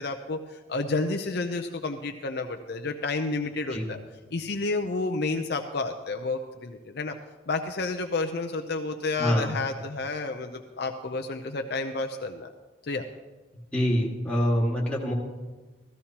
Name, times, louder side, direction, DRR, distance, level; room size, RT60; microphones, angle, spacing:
voice 1, 0.0-4.0 4.3-7.1 7.5-12.5 12.8-13.1, left 3 dB, 55° left, 5 dB, 0.6 m, -30 dB
voice 2, 9.2-9.5 13.7-15.1, equal, 5° left, -5 dB, 1.8 m, -25 dB
16.0 x 14.0 x 2.9 m, 1.3 s
head